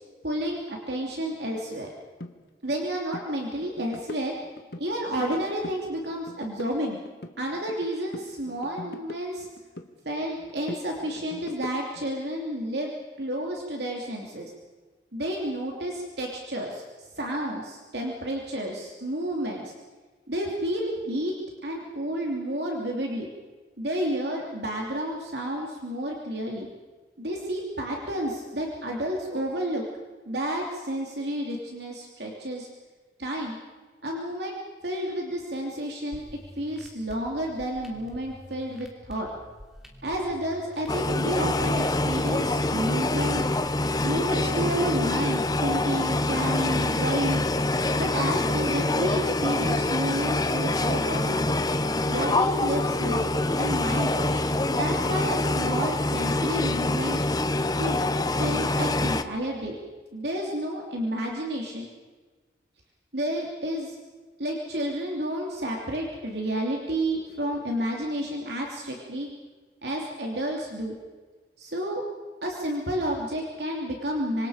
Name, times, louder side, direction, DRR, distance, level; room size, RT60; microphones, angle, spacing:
voice 1, 0.2-1.9 2.6-4.3 4.8-7.0 7.4-9.5 10.0-14.5 15.1-19.7 20.3-21.3 21.6-23.3 23.8-26.7 27.2-29.8 30.2-32.7 33.2-33.6 34.0-36.3 36.6-39.3 40.0-43.5 44.0-47.4 48.0-51.4 52.1-57.2 57.8-58.0 58.4-59.8 60.1-61.9 63.1-64.0 64.4-69.3 69.8-71.0 71.6-72.0 72.4-74.5, right 1 dB, 65° right, 0 dB, 3.0 m, -31 dB
sound 1, 2.2-2.3 2.7-2.8 3.1-3.3 3.6-4.9 5.2-5.8 6.1-7.9 8.1-9.9 10.2-12.1, left 1 dB, 60° left, 1.7 m, -41 dB
sound 2, 36.1-44.1, equal, 5° right, 3.0 m, -48 dB
sound 3, 40.9-59.2, left 2 dB, 20° left, 0.9 m, -25 dB
26.5 x 26.0 x 5.1 m, 1.4 s
head